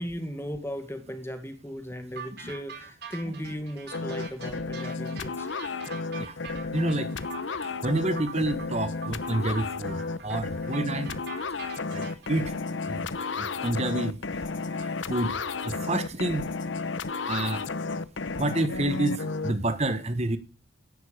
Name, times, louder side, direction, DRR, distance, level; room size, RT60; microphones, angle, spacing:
voice 1, 0.0-5.5, equal, 15° left, 8 dB, 2.0 m, -37 dB
sound 1, 2.2-12.4, right 6 dB, 55° right, 4.4 m, -43 dB
Funny Talk, 3.9-19.5, left 4 dB, 75° left, 0.9 m, -32 dB
voice 2, 6.7-7.1 7.8-11.2 11.9-12.5 12.8-13.1 13.4-14.2 14.8-15.4 15.6-16.5 17.3-17.6 18.4-20.4, right 2 dB, 35° right, 11 dB, 1.4 m, -28 dB
16.5 x 11.5 x 5.1 m, 0.35 s
head